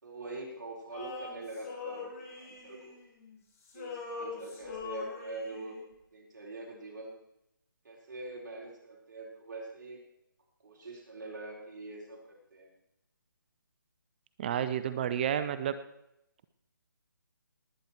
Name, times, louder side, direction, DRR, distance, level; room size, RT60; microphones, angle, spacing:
voice 1, 0.0-3.0 3.7-5.8 6.1-7.1 7.8-10.0 10.6-12.2 12.5-12.7, right 2 dB, 55° right, -2 dB, 4.6 m, -43 dB
Male singing, 0.9-3.4 3.6-5.8, left 4 dB, 40° left, 5.3 m, -43 dB
voice 2, 14.4-15.8, right 9 dB, 25° right, 12 dB, 0.7 m, -30 dB
19.5 x 9.4 x 4.5 m, 0.82 s
figure-of-eight pair, 155°, 12 cm